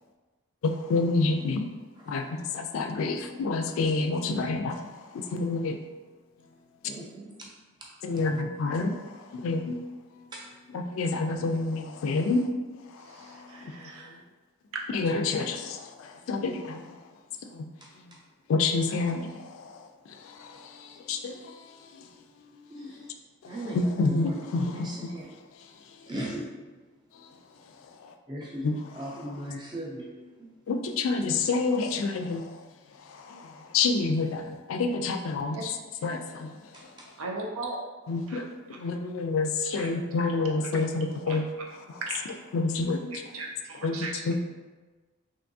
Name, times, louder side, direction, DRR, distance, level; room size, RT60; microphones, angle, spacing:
voice 1, 0.6-1.7 2.1-5.8 8.0-9.8 10.7-12.5 12.9-14.2 14.9-17.0 17.4-17.7 18.0-18.2 18.5-22.1 22.5-23.1 23.4-25.1 25.6-26.0 27.1-27.3 27.8-28.1 28.6-29.5 30.7-32.7 33.0-35.7 36.0-36.9 38.1-41.4 41.9-42.0 42.5-43.1 43.8-44.3, left 3 dB, 75° left, 6 dB, 0.3 m, -29 dB
voice 2, 6.8-7.3 22.7-22.9 23.5-23.8 24.7-24.8 25.1-25.2 26.1-26.5 28.3-28.7 29.0-30.1, right 1 dB, 20° right, -3 dB, 0.5 m, -36 dB
voice 3, 13.0-14.2 35.5-35.6 37.2-37.8 38.3-38.4 39.8-39.9 40.7-40.8 41.3-41.4 42.0-42.4 43.1-44.3, right 3 dB, 85° right, 0 dB, 0.5 m, -38 dB
3.4 x 2.6 x 2.6 m, 1.3 s
head